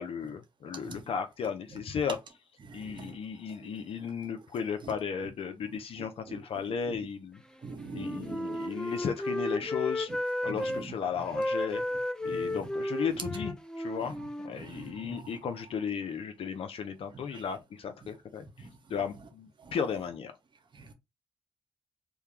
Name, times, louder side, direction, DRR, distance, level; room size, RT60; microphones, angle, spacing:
voice 1, 0.0-2.2 2.7-7.4 7.9-10.1 10.4-11.8 12.2-18.4 18.9-20.3, left 6 dB, 70° left, 0.5 m, -35 dB
voice 2, 2.6-3.1 3.6-3.7 4.8-4.9 6.3-6.4 6.9-7.0 7.6-8.9 10.5-10.9 12.3-12.7 14.6-14.9 17.3-17.4, right 4 dB, 50° right, 0.8 m, -43 dB
Wind instrument woodwind instrument, 7.9-10.8 11.3-15.2, left 1 dB, 5° left, 0.4 m, -34 dB
2.2 x 2.2 x 3.1 m
supercardioid pair, 50°, 10 cm